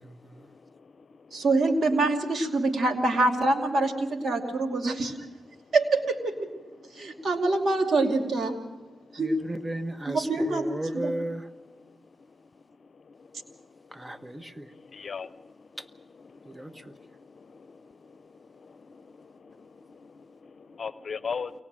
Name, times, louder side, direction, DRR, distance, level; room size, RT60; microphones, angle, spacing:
voice 1, 0.0-1.4 5.6-5.7 6.9-7.3 9.1-9.2 11.8-12.3 12.8-21.6, left 5 dB, 65° left, 15 dB, 0.7 m, -43 dB
voice 2, 1.3-5.1 5.7-6.5 6.9-8.5 9.1-9.3 10.1-11.1, right 2 dB, 70° right, 5 dB, 2.6 m, -25 dB
voice 3, 9.2-11.4 13.9-14.7 16.5-16.7, right 1 dB, 25° right, 9 dB, 1.4 m, -34 dB
23.5 x 18.5 x 7.6 m, 1.1 s
supercardioid pair, 45°, 0 cm